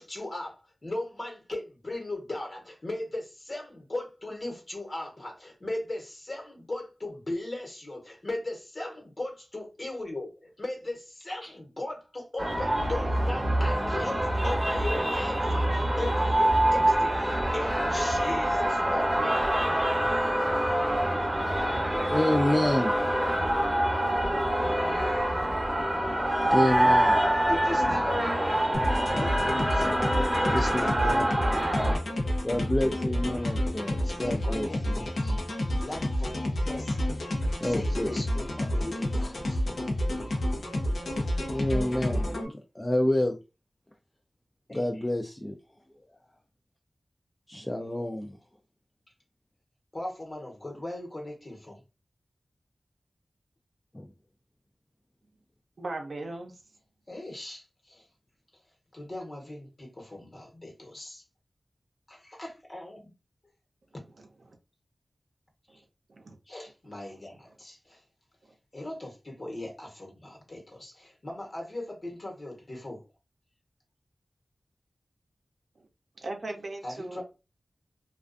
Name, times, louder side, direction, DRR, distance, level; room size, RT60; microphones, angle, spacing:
voice 1, 0.0-19.8 27.5-28.2 28.6-28.7 29.1-29.9 30.6-31.3 31.8-32.0 34.0-35.4 35.8-37.2 37.6-39.6 44.7-45.0 49.9-51.8 57.1-58.0 58.9-61.2 62.1-63.1 66.5-68.0 68.7-73.0 76.8-77.2, left 1 dB, 45° left, 1.0 m, -38 dB
sound 1, 12.4-32.0, right 1 dB, 20° right, 0.7 m, -25 dB
voice 2, 21.9-23.2 26.5-27.2 30.5-31.2 32.4-35.0 37.6-38.1 41.4-43.4 44.7-45.6 47.5-48.4 53.9-54.1, left 1 dB, 20° left, 0.3 m, -28 dB
sound 2, 28.7-42.5, left 1 dB, 85° left, 0.6 m, -29 dB
voice 3, 55.8-56.6 64.5-64.6 65.7-65.8 66.1-66.4 76.2-77.2, right 2 dB, 75° right, 0.6 m, -38 dB
2.4 x 2.3 x 2.4 m
wide cardioid pair, 55°, 0 cm